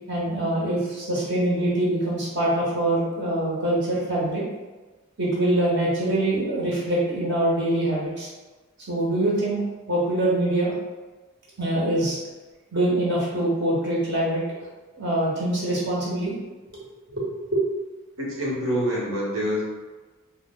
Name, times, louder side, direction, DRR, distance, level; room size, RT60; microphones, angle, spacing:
voice 1, 0.1-4.4 5.2-8.3 8.9-9.6 9.9-10.7 11.6-12.2 12.7-14.4 15.0-16.3 16.7-17.6, right 1 dB, 50° right, -6 dB, 1.1 m, -24 dB
voice 2, 18.2-19.6, equal, 70° right, -5 dB, 1.1 m, -26 dB
3.2 x 2.2 x 3.6 m, 1.2 s
head